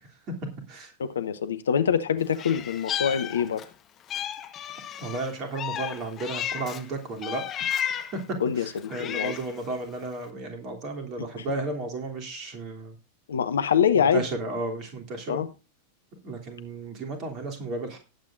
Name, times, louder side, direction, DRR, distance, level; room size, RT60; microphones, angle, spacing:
voice 1, 0.3-0.9 5.0-13.0 14.0-15.4 16.2-18.0, right 2 dB, 35° right, 3.1 m, -34 dB
voice 2, 1.0-3.6 8.4-9.3 11.2-11.4 13.3-14.2 15.3-15.5, left 7 dB, 65° left, 0.9 m, -25 dB
Meow, 2.3-3.7 4.1-6.8 7.2-8.2 8.8-9.6, left 9 dB, 30° left, 1.3 m, -33 dB
18.5 x 8.4 x 2.6 m
figure-of-eight pair, 90°, 0 cm